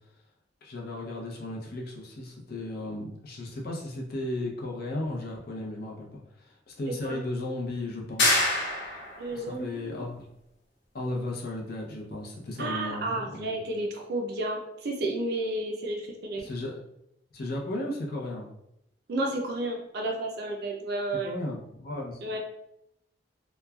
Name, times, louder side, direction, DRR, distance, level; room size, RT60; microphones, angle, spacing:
voice 1, 0.6-8.4 9.3-10.2 10.9-13.6 16.4-16.8 17.3-18.5 21.2-22.2, left 1 dB, 60° left, -1 dB, 0.6 m, -35 dB
voice 2, 6.9-7.2 9.2-10.0 12.6-16.4 19.1-21.3 22.2-22.4, right 2 dB, 60° right, 1 dB, 0.5 m, -32 dB
sound 1, 8.2-9.3, left 2 dB, 75° left, 1.1 m, -25 dB
3.0 x 2.2 x 2.3 m, 0.80 s
head